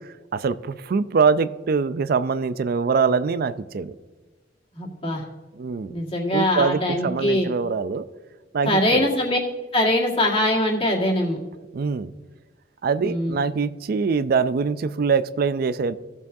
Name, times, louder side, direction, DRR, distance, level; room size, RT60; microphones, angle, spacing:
voice 1, 0.0-4.0 5.5-5.9 6.3-8.0 8.5-9.1 11.7-12.1 12.8-15.9, right 5 dB, 55° right, 15 dB, 0.4 m, -23 dB
voice 2, 4.8-5.2 5.9-7.5 8.6-9.4 9.7-11.4 13.0-13.4, left 1 dB, 30° left, -1 dB, 1.8 m, -22 dB
16.0 x 7.1 x 2.7 m, 1.3 s
head